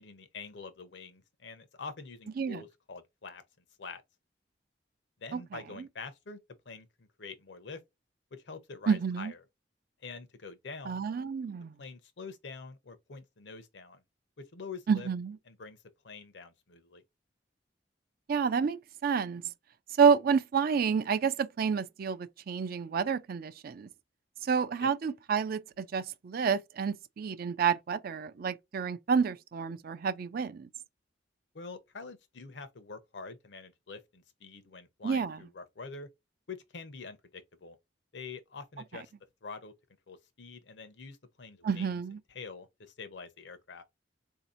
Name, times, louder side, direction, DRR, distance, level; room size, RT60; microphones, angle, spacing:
voice 1, 0.0-3.4 3.8-4.0 5.2-6.4 6.7-7.8 8.3-9.4 10.0-11.0 11.8-14.0 14.4-15.1 15.4-15.8 16.0-17.0 24.8-24.9 31.5-36.1 36.5-37.8 38.1-39.1 39.4-39.7 40.1-42.0 42.3-43.8, left 4 dB, 70° left, 0.7 m, -46 dB
voice 2, 8.9-9.3 10.9-11.7 14.9-15.4 18.3-19.4 20.0-23.9 24.4-30.7 35.0-35.4 41.6-42.2, right 6 dB, 55° right, 0.4 m, -29 dB
4.1 x 2.7 x 2.5 m
head